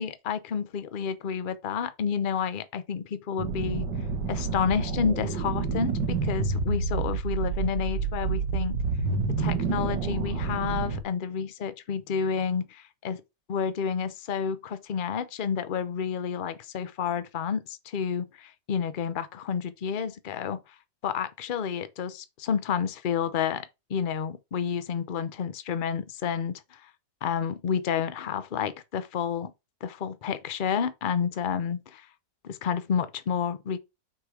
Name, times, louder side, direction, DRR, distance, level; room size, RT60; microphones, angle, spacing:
voice 1, 0.0-3.9 4.3-8.8 9.4-13.2 13.5-20.6 21.0-26.9 27.2-29.5 29.8-32.1 32.4-33.8, left 7 dB, 50° left, 0.6 m, -30 dB
sound 1, 3.4-11.0, right 4 dB, 85° right, 1.9 m, -28 dB
6.7 x 4.9 x 4.8 m
omnidirectional pair, 1.8 m